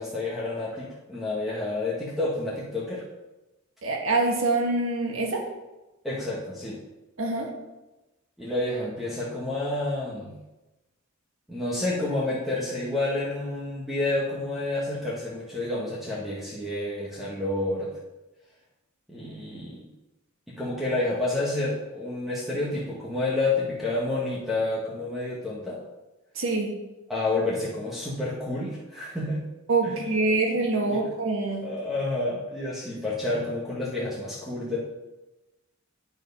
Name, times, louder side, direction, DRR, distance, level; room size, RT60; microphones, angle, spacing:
voice 1, 0.0-3.1 6.0-6.8 8.4-10.4 11.5-17.9 19.1-19.9 20.5-25.8 27.1-29.5 29.8-30.0 30.9-31.0 31.6-34.8, left 2 dB, ahead, -7 dB, 1.2 m, -29 dB
voice 2, 3.8-5.4 7.2-7.5 26.3-26.7 29.7-31.7, right 3 dB, 70° right, 1 dB, 1.6 m, -25 dB
9.0 x 4.6 x 5.3 m, 1.1 s
head